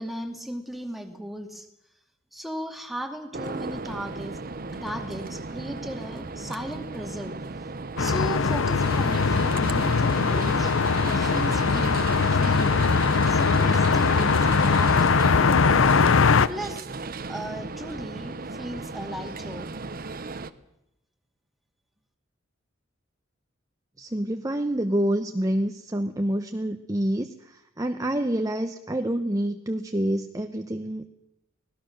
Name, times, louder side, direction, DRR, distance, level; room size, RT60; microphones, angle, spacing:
voice 1, 0.0-1.7 2.3-4.4 4.7-7.4 8.0-10.7 11.1-12.8 13.3-16.1 16.5-19.7, equal, ahead, 4 dB, 2.3 m, -36 dB
sound 1, 3.3-20.5, right 3 dB, 45° right, 0.9 m, -36 dB
sound 2, 8.0-16.5, left 5 dB, 80° left, 0.7 m, -21 dB
voice 2, 24.0-31.1, right 1 dB, 15° right, 7 dB, 0.9 m, -27 dB
25.0 x 18.0 x 6.6 m, 0.88 s
head